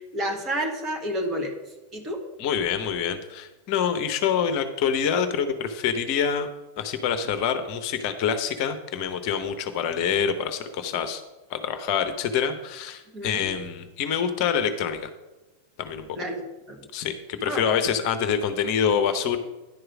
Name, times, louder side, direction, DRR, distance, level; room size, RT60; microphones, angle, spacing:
voice 1, 0.1-1.5 1.9-2.2 13.1-13.5 16.1-16.8 17.4-17.7, right 1 dB, 25° right, 3 dB, 1.5 m, -30 dB
voice 2, 2.4-6.5 6.8-11.2 11.5-15.1 15.8-16.3 16.9-19.4, left 7 dB, 45° left, 9 dB, 0.7 m, -26 dB
10.5 x 4.8 x 6.0 m, 1.1 s
figure-of-eight pair, 90°, 0 cm